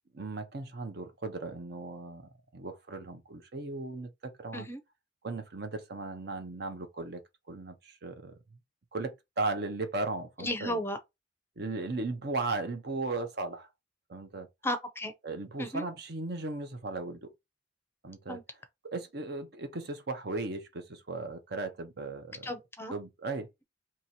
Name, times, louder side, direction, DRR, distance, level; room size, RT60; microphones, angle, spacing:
voice 1, 0.1-4.7 5.2-7.2 7.5-8.3 8.9-10.8 11.6-13.7 14.1-14.5 15.2-17.3 18.0-18.4 18.9-22.5 22.9-23.5, right 3 dB, 55° right, 0.8 m, -36 dB
voice 2, 10.4-11.0 14.6-15.1 15.6-15.8 18.3-18.4 22.4-22.9, left 1 dB, 15° left, 0.6 m, -34 dB
2.9 x 2.8 x 4.2 m
head